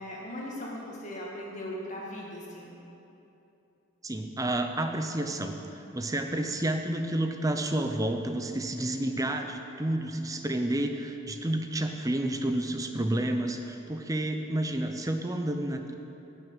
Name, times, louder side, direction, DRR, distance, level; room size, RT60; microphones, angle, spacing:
voice 1, 0.0-2.7, left 1 dB, 35° left, -4 dB, 2.1 m, -38 dB
voice 2, 4.0-5.6 5.9-15.9, right 1 dB, 15° right, 5 dB, 0.6 m, -30 dB
11.0 x 6.5 x 8.8 m, 2.9 s
head